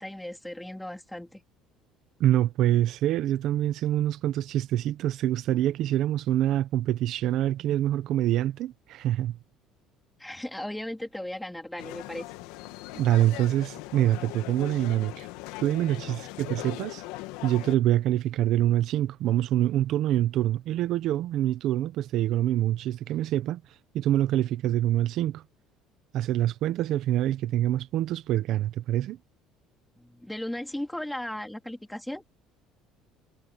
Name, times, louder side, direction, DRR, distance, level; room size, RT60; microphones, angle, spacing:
voice 1, 0.0-1.4 10.2-12.3 16.1-16.2 30.0-32.2, left 1 dB, 5° left, 3.5 m, -36 dB
voice 2, 2.2-9.4 12.9-15.3 15.6-17.0 17.4-23.6 23.9-25.4 26.1-29.2, right 13 dB, 60° right, 0.9 m, -25 dB
sound 1, 11.8-17.8, left 18 dB, 90° left, 1.7 m, -40 dB
cardioid pair, 130°, 0 cm